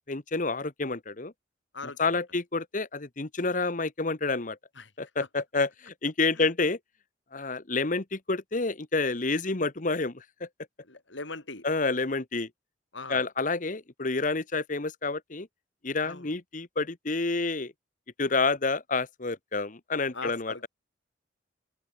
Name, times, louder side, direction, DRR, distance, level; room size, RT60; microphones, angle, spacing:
voice 1, 0.0-1.3 2.0-4.6 5.0-6.8 7.3-10.5 11.6-12.5 13.1-15.5 15.8-17.7 18.2-20.7, left 3 dB, 45° left, 1.2 m, -29 dB
voice 2, 1.7-2.2 4.7-4.9 6.3-6.5 10.8-11.6 12.9-13.3 16.0-16.3 20.1-20.7, left 3 dB, 75° left, 5.0 m, -40 dB
open air
head